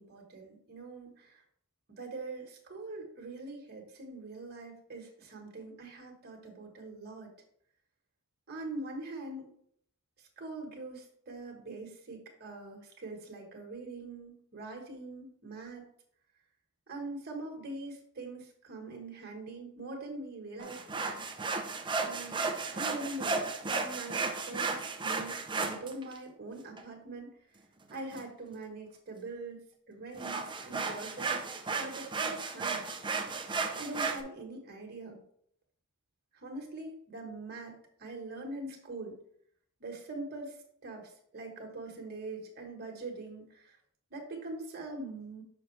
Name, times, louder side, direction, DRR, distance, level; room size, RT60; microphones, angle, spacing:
voice 1, 0.0-1.4 1.9-7.3 8.5-9.5 10.2-15.8 16.9-21.0 22.0-22.5 22.7-27.3 27.9-31.4 31.8-32.9 33.7-35.2 36.3-39.2 39.8-43.8 44.1-45.4, right 2 dB, 45° right, 1 dB, 1.3 m, -43 dB
sound 1, 20.6-26.2 26.8-26.9 27.9-28.2 30.2-34.2, right 4 dB, 20° right, 0.6 m, -34 dB
6.3 x 5.3 x 3.2 m, 0.66 s
head